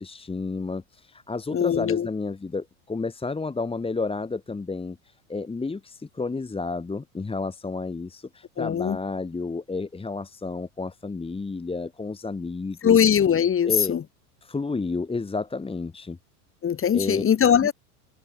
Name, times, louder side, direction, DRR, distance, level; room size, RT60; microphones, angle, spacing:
voice 1, 0.0-13.1 13.6-13.9 14.4-16.2 16.9-17.2, left 3 dB, 10° left, 2.5 m, -31 dB
voice 2, 1.5-2.1 8.6-9.0 12.8-14.0 16.6-17.7, left 8 dB, 30° left, 4.5 m, -21 dB
hypercardioid pair, 90°, 44 cm